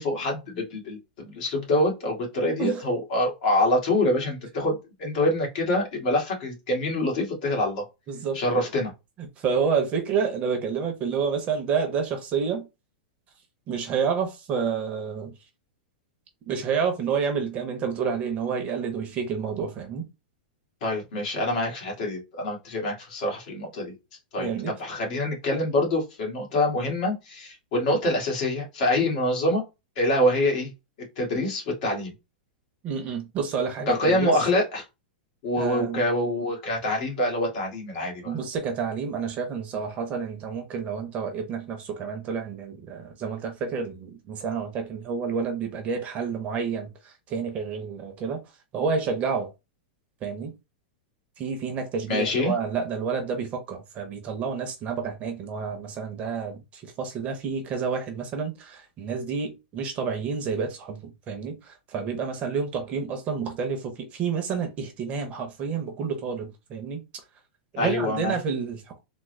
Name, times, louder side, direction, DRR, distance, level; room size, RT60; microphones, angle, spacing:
voice 1, 0.0-7.8 8.3-8.9 20.8-23.9 24.3-29.6 30.0-30.7 31.2-32.1 33.9-34.8 35.4-38.4 52.1-52.5 67.8-68.4, left 1 dB, 50° left, 1.7 m, -25 dB
voice 2, 8.1-8.6 9.2-12.7 13.7-15.3 16.5-20.1 24.4-24.7 32.8-34.4 35.6-36.1 38.2-48.4 48.7-49.5 50.2-50.5 51.4-67.0 67.7-69.0, right 6 dB, 25° right, 0.7 m, -29 dB
3.5 x 2.0 x 3.1 m
supercardioid pair, 150°, 5 cm